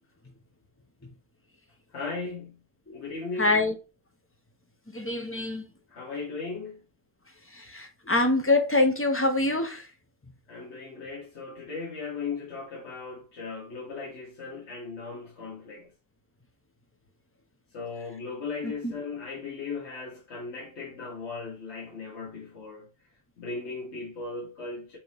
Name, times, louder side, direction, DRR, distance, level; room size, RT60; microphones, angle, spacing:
voice 1, 1.9-2.6 2.9-3.6 5.9-6.8 10.5-15.9 17.7-22.9 23.4-25.0, left 4 dB, 80° left, 1.5 m, -37 dB
voice 2, 3.4-3.8 4.9-5.7 7.5-9.9 18.6-18.9, left 2 dB, 20° left, 0.4 m, -25 dB
5.9 x 2.7 x 3.3 m
omnidirectional pair, 1.1 m